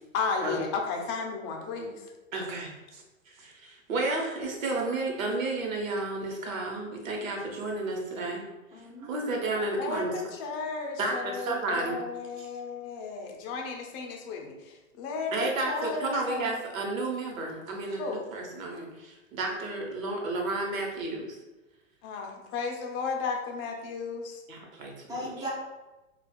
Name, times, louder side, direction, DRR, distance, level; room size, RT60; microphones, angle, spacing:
voice 1, 0.1-2.0 9.8-16.6 18.0-18.2 22.0-24.4, left 5 dB, 30° left, 2 dB, 0.6 m, -34 dB
voice 2, 2.3-8.4 9.0-10.3 11.0-12.0 12.4-12.5 15.3-21.4 24.5-25.2, right 2 dB, 80° right, 0 dB, 1.0 m, -32 dB
voice 3, 8.7-9.8 25.1-25.5, equal, 10° right, -4 dB, 0.7 m, -39 dB
4.1 x 2.4 x 2.3 m, 1.1 s
hypercardioid pair, 110°, 40 cm